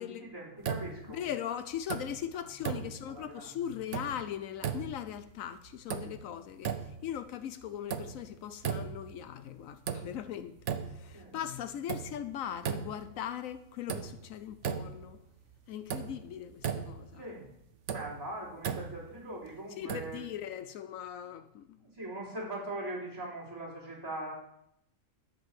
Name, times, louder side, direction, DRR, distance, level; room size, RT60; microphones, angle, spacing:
voice 1, 0.0-1.2 2.3-3.5 11.1-11.4 17.1-17.5 17.9-20.2 21.8-24.3, right 1 dB, 15° right, 3.9 m, -41 dB
sound 1, 0.6-1.3 1.7-2.3 2.6-3.3 3.7-4.3 4.6-5.2 5.7-6.4 6.6-7.2 7.6-8.3 8.6-9.2 9.6-10.3 10.6-11.2 11.6-13.2 13.6-13.7 13.9-15.2 15.4-15.5 15.9-17.2 17.6-19.2 19.9-20.3, right 7 dB, 65° right, 1.1 m, -37 dB
voice 2, 1.1-15.2 15.7-17.2 19.8-21.8, left 10 dB, 80° left, 1.0 m, -40 dB
11.5 x 5.6 x 7.4 m
omnidirectional pair, 1.4 m